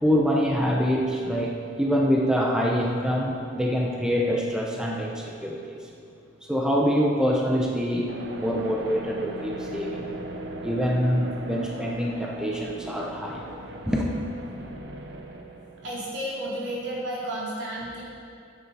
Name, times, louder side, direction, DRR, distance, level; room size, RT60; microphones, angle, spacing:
voice 1, 0.0-5.8 6.5-8.1 8.4-10.1 10.6-13.4 13.9-14.1, equal, 5° right, -2 dB, 0.7 m, -25 dB
sound 1, 8.1-16.6, right 2 dB, 65° right, 0.8 m, -39 dB
voice 2, 15.8-18.0, right 1 dB, 80° right, -6 dB, 2.7 m, -32 dB
10.5 x 8.1 x 4.2 m, 2.4 s
head